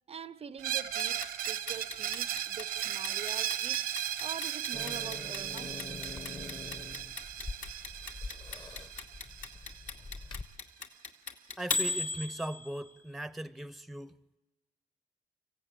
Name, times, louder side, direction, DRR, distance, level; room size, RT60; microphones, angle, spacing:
voice 1, 0.1-3.9 4.2-6.2, right 7 dB, 45° right, 0.7 m, -45 dB
Screech, 0.6-10.2, right 11 dB, 85° right, 1.0 m, -36 dB
Clock, 1.0-13.0, left 3 dB, 60° left, 2.4 m, -37 dB
Growling / Hiss, 4.7-10.4, left 3 dB, 30° left, 1.2 m, -44 dB
voice 2, 11.6-14.4, right 1 dB, ahead, 0.8 m, -39 dB
25.0 x 15.5 x 8.9 m
cardioid pair, 75°, 15 cm